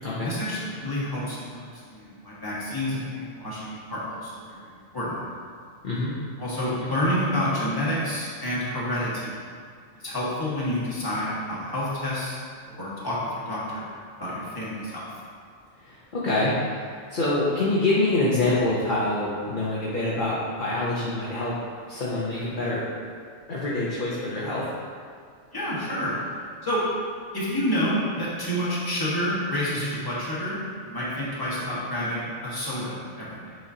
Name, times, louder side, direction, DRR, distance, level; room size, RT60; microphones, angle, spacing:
voice 1, 0.2-5.2 6.4-9.4 10.0-12.4 12.7-13.9 14.2-15.0 25.5-26.2 26.6-26.9 27.3-33.6, left 1 dB, 20° left, -8 dB, 1.5 m, -29 dB
voice 2, 15.8-16.8 17.1-21.5 21.9-22.8 23.5-24.6, left 2 dB, 45° left, -7 dB, 0.9 m, -25 dB
7.9 x 4.5 x 2.8 m, 2.1 s
omnidirectional pair, 1.3 m